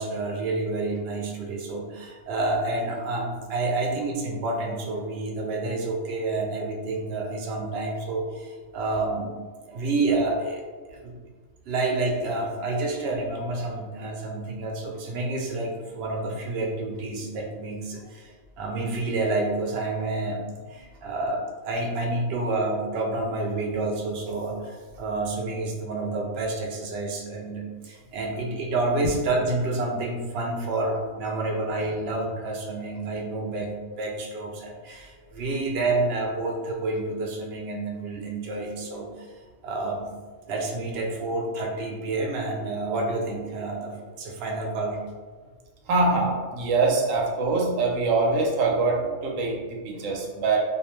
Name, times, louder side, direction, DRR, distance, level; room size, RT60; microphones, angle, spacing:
voice 1, 0.0-9.4 9.7-10.6 10.9-11.1 11.7-39.3 39.6-40.1 40.5-45.0, right 2 dB, 65° right, 1 dB, 0.7 m, -29 dB
voice 2, 45.9-50.6, right 3 dB, 85° right, -1 dB, 1.0 m, -24 dB
2.4 x 2.2 x 3.0 m, 1.4 s
omnidirectional pair, 1.3 m